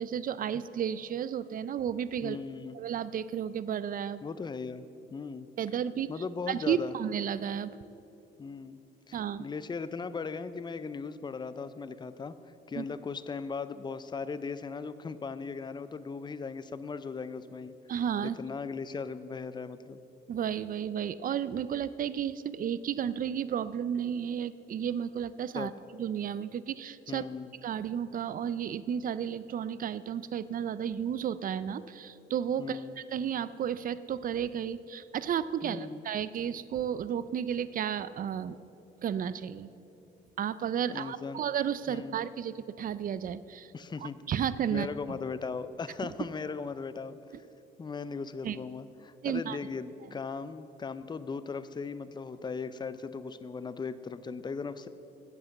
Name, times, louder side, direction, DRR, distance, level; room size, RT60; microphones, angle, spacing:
voice 1, 0.0-2.4 2.7-4.2 5.6-6.1 6.5-7.7 9.1-9.5 12.8-12.9 17.9-18.4 20.3-25.7 26.0-27.2 27.6-32.8 33.1-38.6 39.0-39.7 40.4-43.7 44.0-44.9 48.4-48.6 49.2-49.6, right 8 dB, 45° right, 16 dB, 0.4 m, -32 dB
voice 2, 2.2-2.7 4.2-4.9 5.1-5.5 6.1-6.9 8.4-8.8 9.1-12.4 12.7-17.7 18.2-20.0 25.6-25.7 27.1-27.5 32.6-33.0 35.6-36.0 40.9-41.4 41.9-42.2 43.7-44.2 44.7-47.2 47.8-54.9, left 5 dB, 20° left, 13 dB, 0.4 m, -38 dB
8.1 x 8.0 x 7.2 m, 2.7 s
cardioid pair, 90°, 20 cm